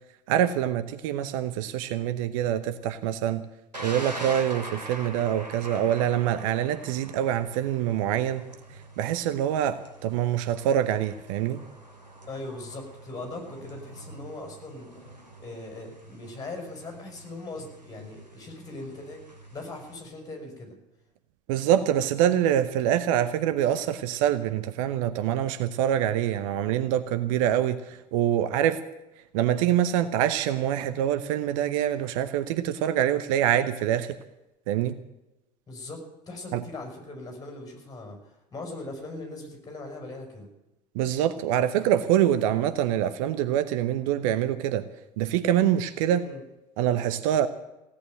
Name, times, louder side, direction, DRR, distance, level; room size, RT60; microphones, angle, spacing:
voice 1, 0.3-3.5 3.8-8.4 9.0-11.6 21.5-28.8 29.3-34.1 34.7-35.0 36.5-36.6 40.9-44.8 45.2-46.2 46.8-47.5, right 11 dB, 55° right, 11 dB, 0.9 m, -25 dB
Thunder, 3.7-20.0, right 1 dB, 80° right, 3.0 m, -44 dB
voice 2, 12.3-15.0 15.4-20.8 35.7-40.5 46.1-46.4, left 2 dB, 20° left, 2 dB, 6.2 m, -40 dB
17.0 x 8.7 x 9.1 m, 0.97 s
figure-of-eight pair, 75°, 21 cm